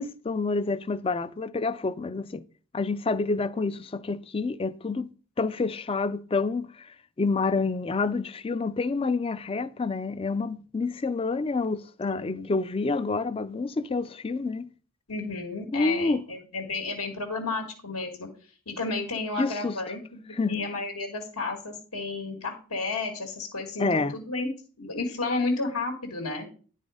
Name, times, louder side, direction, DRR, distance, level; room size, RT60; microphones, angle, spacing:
voice 1, 0.0-2.4 2.7-5.1 5.4-14.7 15.7-16.2 19.4-19.8 20.3-20.7 23.8-24.1, left 3 dB, 25° left, 0.3 m, -28 dB
voice 2, 12.0-12.5 15.1-18.3 18.7-24.5 24.8-26.5, left 3 dB, 85° left, 1.6 m, -32 dB
10.0 x 4.1 x 4.8 m
head